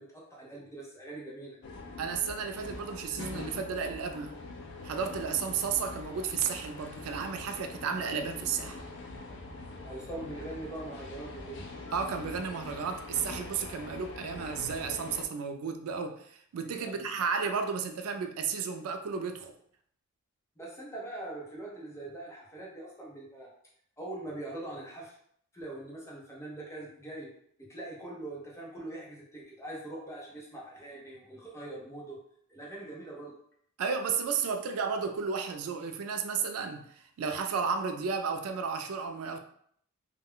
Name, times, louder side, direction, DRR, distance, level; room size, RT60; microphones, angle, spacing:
voice 1, 0.0-1.6 9.8-11.6 16.6-17.1 20.6-23.5 24.0-25.1 25.5-27.3 27.7-32.2 32.5-33.3, right 2 dB, 15° left, -4 dB, 0.7 m, -42 dB
sound 1, 1.6-15.3, left 2 dB, 55° left, 0.4 m, -43 dB
voice 2, 2.0-4.4 4.8-8.8 11.9-19.5 33.8-39.4, right 6 dB, 90° right, 7 dB, 0.3 m, -33 dB
2.2 x 2.1 x 3.5 m, 0.65 s
head